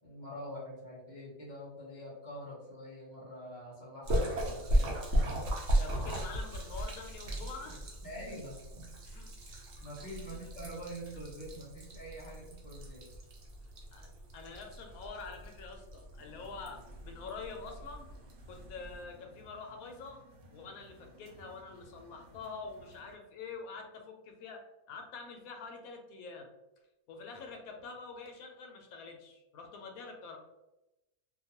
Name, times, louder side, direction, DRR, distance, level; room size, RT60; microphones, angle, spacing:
voice 1, 0.0-5.0 7.3-7.4 8.0-8.9 9.8-13.1, equal, 50° left, -4 dB, 0.5 m, -45 dB
Splash splatter, 4.0-19.0, right 1 dB, 60° right, 0.8 m, -36 dB
voice 2, 5.7-8.0 9.0-9.3 9.6-9.7 10.3-10.5 13.9-18.1 18.5-20.2 20.5-26.5 27.1-30.4, left 4 dB, 75° left, 3 dB, 1.0 m, -46 dB
sound 1, 16.2-23.2, right 1 dB, 85° right, 1.1 m, -58 dB
2.5 x 2.2 x 2.7 m, 0.96 s
omnidirectional pair, 1.5 m